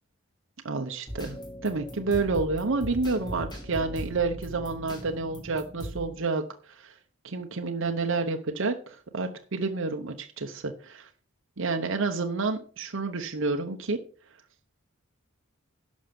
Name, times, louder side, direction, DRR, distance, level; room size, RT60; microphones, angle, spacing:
voice 1, 0.6-1.4 1.6-6.9 7.2-11.1 11.6-14.0, right 3 dB, 60° right, 4 dB, 0.9 m, -29 dB
sound 1, 1.1-6.2, equal, 20° left, 2.5 m, -39 dB
11.5 x 6.3 x 5.3 m, 0.42 s
head